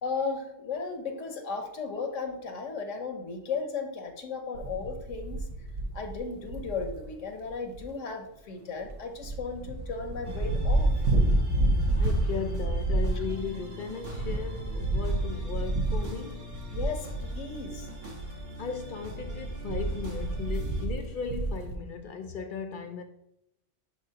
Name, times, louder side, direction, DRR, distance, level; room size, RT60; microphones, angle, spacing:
voice 1, 0.0-5.5 5.9-10.9 16.7-17.9, left 4 dB, 80° left, 1.2 m, -35 dB
sound 1, 4.5-7.1 7.4-7.5 7.7-7.8 8.8-9.0 9.2-18.4 18.8-21.8, right 1 dB, 70° right, 1.1 m, -29 dB
sound 2, 10.2-20.9, equal, 50° right, 1.6 m, -43 dB
voice 2, 12.0-16.5 18.6-23.0, left 5 dB, 60° left, 0.5 m, -36 dB
10.0 x 3.9 x 2.8 m
omnidirectional pair, 1.3 m